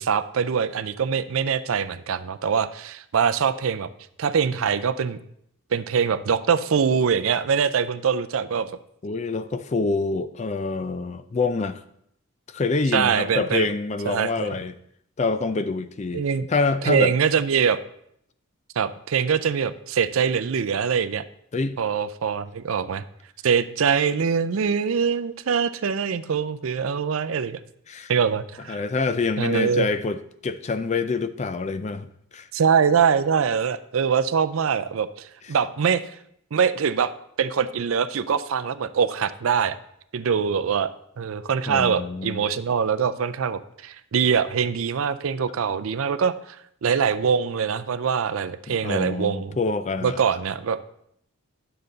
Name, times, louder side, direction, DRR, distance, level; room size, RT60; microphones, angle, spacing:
voice 1, 0.0-3.9 4.2-5.2 5.7-8.7 12.9-13.7 14.1-14.5 16.1-16.5 16.8-17.8 18.8-21.2 21.8-23.0 23.4-27.6 28.1-28.8 29.4-29.9 32.5-36.1 36.5-37.1 37.4-39.8 40.1-49.6 50.0-50.8, right 6 dB, 70° right, 13 dB, 0.4 m, -23 dB
voice 2, 9.0-11.8 12.5-14.7 15.2-16.2 16.5-17.1 21.5-21.8 27.9-28.1 28.7-32.1 32.3-32.5 41.7-42.4 48.7-50.2, left 3 dB, 30° left, 11 dB, 0.4 m, -26 dB
9.8 x 6.7 x 3.9 m, 0.73 s
head